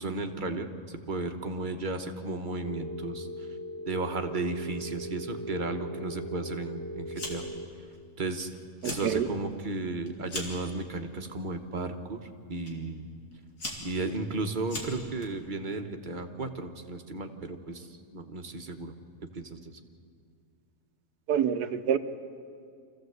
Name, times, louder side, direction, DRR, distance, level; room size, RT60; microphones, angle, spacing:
voice 1, 0.0-3.5 3.8-7.4 8.2-8.5 8.8-12.2 12.5-13.0 13.8-18.9 19.3-19.8, right 3 dB, 35° right, 6 dB, 1.2 m, -34 dB
Telephone, 2.6-7.6, equal, 10° left, 1.8 m, -39 dB
Fire, 7.1-7.6 7.9-8.4 8.7-9.1 9.5-10.7 11.4-11.8 12.7-12.8 13.3-15.3, left 2 dB, 85° left, 3.5 m, -39 dB
voice 2, 8.8-9.3 21.3-22.0, right 8 dB, 80° right, 10 dB, 1.5 m, -27 dB
25.5 x 15.0 x 8.0 m, 2.3 s
omnidirectional pair, 1.6 m